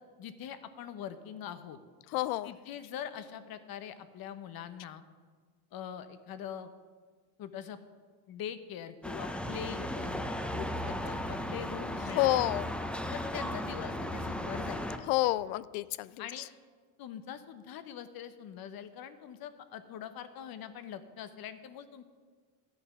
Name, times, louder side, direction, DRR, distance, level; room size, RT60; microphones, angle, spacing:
voice 1, 0.2-1.8 2.4-5.0 5.7-6.7 7.4-7.8 8.3-12.5 13.1-14.9 16.2-16.5 17.0-22.0, left 9 dB, 55° left, 11 dB, 1.0 m, -43 dB
voice 2, 2.1-2.5 12.1-12.7 15.1-16.1, left 17 dB, 75° left, 19 dB, 0.5 m, -28 dB
sound 1, 9.0-15.0, left 1 dB, ahead, 1.0 m, -36 dB
12.0 x 7.1 x 6.0 m, 1.5 s
hypercardioid pair, 75°, 44 cm